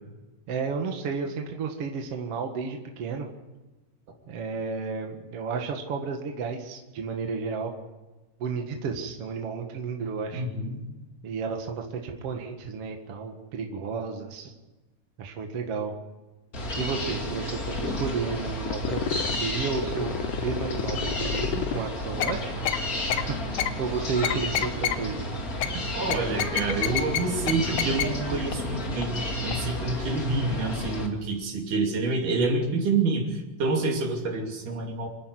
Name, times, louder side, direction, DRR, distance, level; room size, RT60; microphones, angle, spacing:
voice 1, 0.5-3.3 4.3-7.7 8.4-10.4 11.2-14.5 15.2-15.9 16.8-22.5 23.1-25.3, right 5 dB, 50° right, 3 dB, 2.4 m, -32 dB
voice 2, 10.3-10.9 25.9-29.2 29.4-35.1, right 3 dB, 70° right, 1 dB, 4.3 m, -27 dB
sound 1, 16.5-31.1, left 1 dB, 30° left, 2.5 m, -32 dB
sound 2, 18.7-19.4 19.8-21.8 22.2-22.3 22.7-22.8 23.1-23.2 23.6-23.7 24.2-25.0 25.6-25.7 26.1-27.2 27.5-27.6 27.8-28.0 28.5-28.6 29.0-29.1 29.5-29.6, left 11 dB, 75° left, 2.4 m, -28 dB
27.0 x 10.0 x 9.8 m, 1.1 s
omnidirectional pair, 3.8 m